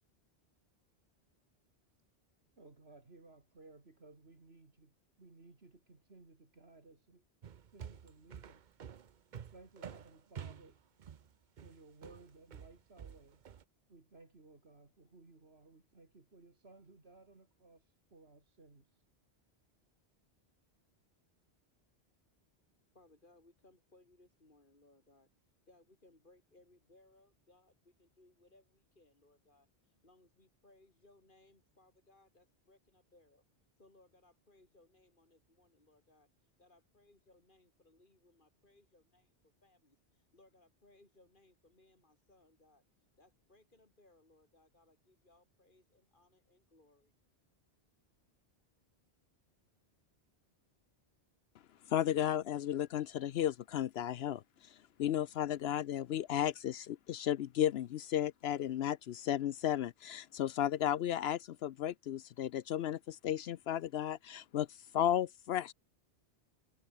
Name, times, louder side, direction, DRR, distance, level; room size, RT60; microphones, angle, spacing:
voice 1, 2.6-7.2 7.7-8.8 9.3-10.8 11.6-13.4 13.9-19.0, right 3 dB, 65° right, 3.3 m, -59 dB
sound 1, 7.4-13.6, right 8 dB, 50° right, 0.8 m, -49 dB
voice 2, 22.4-25.3 25.7-33.4 33.8-47.1, left 2 dB, 50° left, 4.1 m, -67 dB
voice 3, 51.9-64.7 64.9-65.7, left 11 dB, 70° left, 0.8 m, -34 dB
omnidirectional pair, 1.1 m